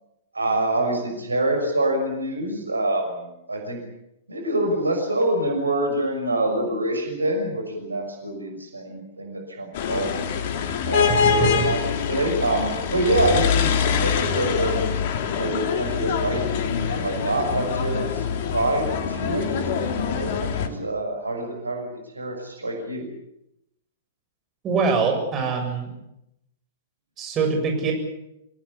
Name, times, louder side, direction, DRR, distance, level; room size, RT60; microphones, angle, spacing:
voice 1, 0.3-3.8 4.3-10.1 10.8-11.8 12.1-14.8 15.4-16.5 16.9-18.3 18.5-23.1, right 1 dB, 80° right, 3 dB, 6.2 m, -26 dB
sound 1, 9.7-20.7, left 7 dB, 45° left, 2.8 m, -24 dB
voice 2, 24.6-25.9 27.2-27.9, right 5 dB, 25° right, 2 dB, 7.6 m, -23 dB
27.0 x 18.5 x 8.5 m, 0.83 s
figure-of-eight pair, 105°, 0 cm